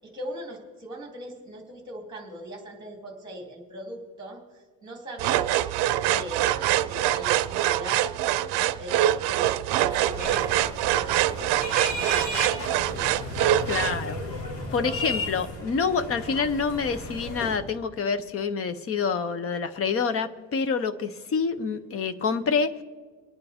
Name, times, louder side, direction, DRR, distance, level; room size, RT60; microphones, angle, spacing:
voice 1, 0.0-5.5 6.1-8.2 8.5-13.2, right 1 dB, 10° right, 0 dB, 2.9 m, -40 dB
sound 1, 5.2-14.0, right 13 dB, 70° right, 0.6 m, -24 dB
sound 2, 9.9-17.6, left 1 dB, 85° left, 2.9 m, -34 dB
voice 2, 13.7-14.2 14.7-22.7, left 5 dB, 35° left, 11 dB, 0.7 m, -27 dB
26.0 x 9.5 x 3.5 m, 1.5 s
cardioid pair, 170°, 40 cm